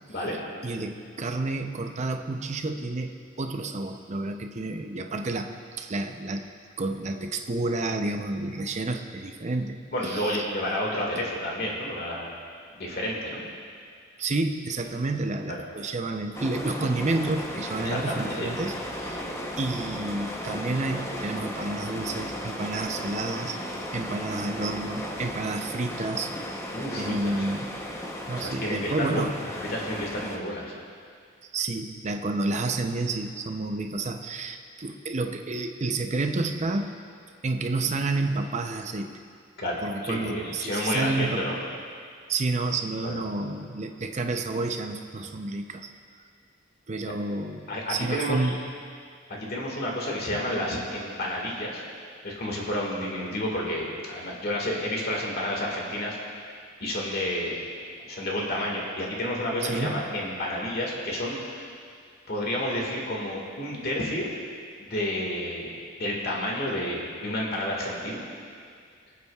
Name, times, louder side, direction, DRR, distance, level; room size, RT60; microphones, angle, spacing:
voice 1, 0.6-5.5 5.8-6.4 6.8-9.8 10.0-10.4 14.2-19.2 19.6-23.6 23.9-26.3 27.0-27.7 28.3-29.3 31.4-37.0 37.4-39.1 39.8-41.5 42.3-45.9 46.9-48.6 59.6-60.0, right 2 dB, 35° right, 5 dB, 0.6 m, -30 dB
voice 2, 9.9-12.3 12.7-13.4 17.8-18.5 26.7-27.4 28.4-29.2 29.6-30.7 39.6-41.6 43.0-43.2 45.2-45.3 47.7-48.5 49.3-51.8 52.2-56.2 56.8-57.8 58.1-61.7 62.3-64.3 64.8-65.7 66.0-68.2, left 1 dB, 50° left, -2 dB, 1.9 m, -30 dB
sound 1, 16.3-30.4, equal, 15° left, 0.8 m, -35 dB
24.5 x 8.3 x 2.4 m, 2.2 s
head